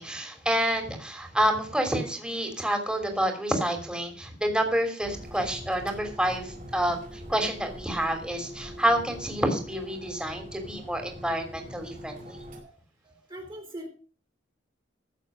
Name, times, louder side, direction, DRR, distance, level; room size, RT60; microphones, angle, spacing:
voice 1, 0.0-12.4, right 1 dB, 5° right, 5 dB, 3.0 m, -28 dB
sound 1, 5.0-12.6, equal, 45° right, 5.3 m, -43 dB
voice 2, 13.0-13.9, right 1 dB, 25° right, 3 dB, 3.7 m, -42 dB
15.0 x 7.1 x 6.1 m, 0.38 s
head